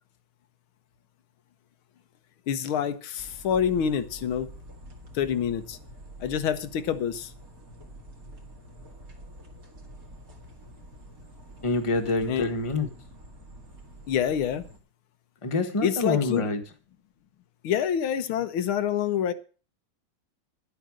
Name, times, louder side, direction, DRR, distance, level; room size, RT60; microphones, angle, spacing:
voice 1, 2.5-4.5 5.1-5.8 6.2-7.3 12.3-12.5 14.1-14.6 15.8-16.5 17.6-19.3, left 8 dB, 90° left, 1.8 m, -27 dB
sound 1, 3.2-14.8, right 1 dB, 45° right, 2.5 m, -47 dB
voice 2, 11.6-12.9 15.4-16.6, left 3 dB, 15° left, 1.2 m, -26 dB
11.0 x 7.9 x 6.3 m
omnidirectional pair, 2.2 m